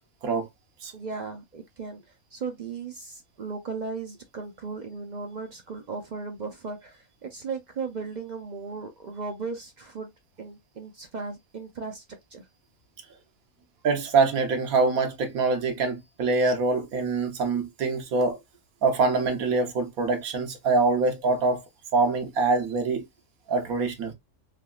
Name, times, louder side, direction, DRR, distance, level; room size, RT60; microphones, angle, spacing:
voice 1, 0.9-2.0 2.3-10.1 10.4-12.0 12.3-12.4, right 4 dB, 60° right, 0.4 m, -36 dB
voice 2, 13.8-18.4 18.8-21.6 21.9-23.1 23.5-24.1, right 3 dB, 85° right, 1.3 m, -24 dB
3.5 x 2.8 x 2.3 m
omnidirectional pair, 1.4 m